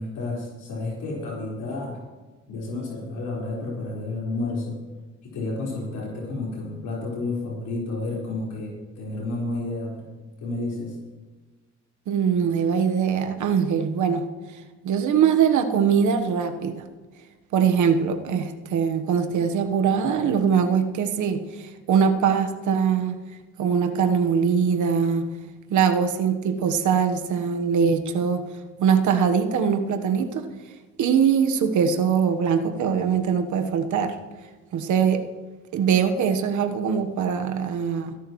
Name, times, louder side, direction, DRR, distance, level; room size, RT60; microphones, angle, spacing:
voice 1, 0.0-2.0 2.5-4.7 5.2-10.1 10.4-11.0, left 2 dB, 80° left, -5 dB, 4.8 m, -31 dB
voice 2, 12.1-16.8 17.5-23.2 23.6-25.3 25.7-28.5 28.8-30.5 31.0-34.2 34.7-35.2 35.7-38.2, right 7 dB, 75° right, 6 dB, 1.3 m, -22 dB
26.0 x 11.0 x 3.1 m, 1.3 s
cardioid pair, 90°, 30 cm